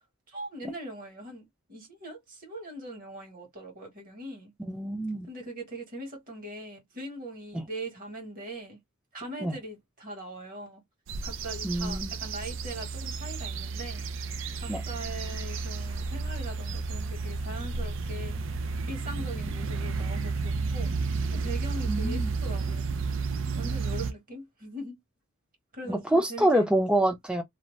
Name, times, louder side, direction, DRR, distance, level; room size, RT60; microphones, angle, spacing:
voice 1, 0.3-4.5 5.3-8.8 9.1-10.8 11.2-14.0 14.6-18.4 18.9-20.9 21.3-23.0 23.5-25.0 25.7-26.7, right 1 dB, 40° right, 1.3 m, -41 dB
voice 2, 4.7-5.3 7.5-7.6 9.4-9.6 11.6-12.1 14.7-14.8 21.9-22.3 25.9-27.4, right 1 dB, 5° right, 0.5 m, -26 dB
sound 1, 11.1-24.1, right 4 dB, 60° right, 0.4 m, -32 dB
2.6 x 2.1 x 3.1 m
head